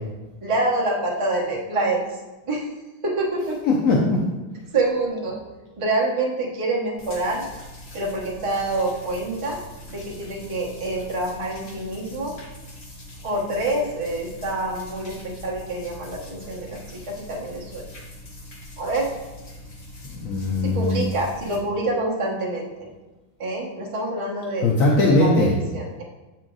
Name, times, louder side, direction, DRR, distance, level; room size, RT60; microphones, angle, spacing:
voice 1, 0.4-2.2 2.5-2.7 3.0-3.6 4.7-5.4 5.8-7.5 7.9-9.6 9.9-12.4 13.2-17.8 18.8-19.1 20.6-22.9 23.4-24.7 25.2-26.0, right 2 dB, 25° right, -4 dB, 0.8 m, -26 dB
voice 2, 3.7-4.2 20.2-21.0 24.6-25.5, left 2 dB, 65° left, -2 dB, 0.8 m, -19 dB
sound 1, 7.0-21.6, left 1 dB, 40° left, 1.1 m, -42 dB
7.4 x 4.4 x 3.8 m, 1.1 s
omnidirectional pair, 2.2 m